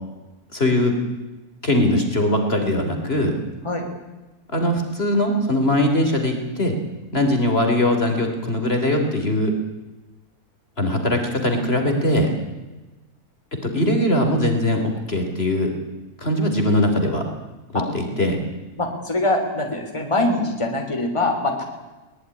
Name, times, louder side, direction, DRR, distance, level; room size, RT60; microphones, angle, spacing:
voice 1, 0.5-0.9 1.6-3.4 4.5-6.7 7.1-9.5 10.8-12.3 13.6-15.7 16.2-17.2 17.7-18.4, left 1 dB, 40° left, 4 dB, 3.5 m, -21 dB
voice 2, 18.8-21.6, left 2 dB, 20° left, 3 dB, 3.3 m, -23 dB
22.0 x 20.0 x 9.8 m, 1.1 s
omnidirectional pair, 1.6 m